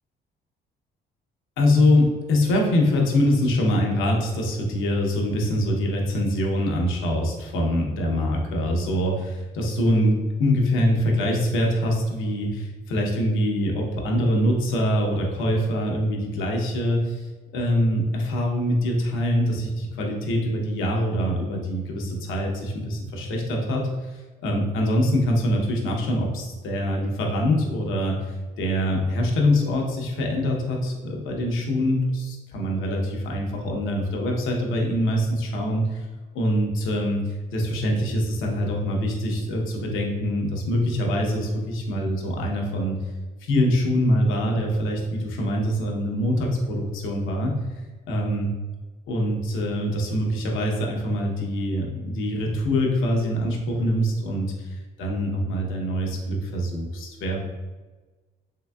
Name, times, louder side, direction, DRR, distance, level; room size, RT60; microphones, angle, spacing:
voice 1, 1.6-17.3 17.5-36.1 36.3-43.0 43.4-47.6 48.1-48.5 49.1-57.4, equal, 85° left, 0 dB, 0.8 m, -24 dB
3.7 x 3.4 x 2.3 m, 1.3 s
cardioid pair, 90°, 20 cm